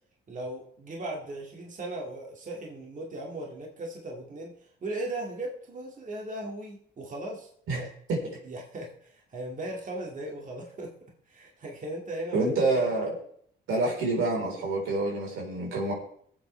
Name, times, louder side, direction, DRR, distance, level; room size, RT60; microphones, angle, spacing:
voice 1, 0.3-4.5 4.8-7.9 8.4-10.9 11.3-12.4 13.0-13.1, right 1 dB, 40° right, -1 dB, 2.4 m, -37 dB
voice 2, 12.3-13.1 13.7-15.9, right 2 dB, 90° right, -2 dB, 4.3 m, -27 dB
20.5 x 8.0 x 3.4 m, 0.63 s
cardioid pair, 90°, 20 cm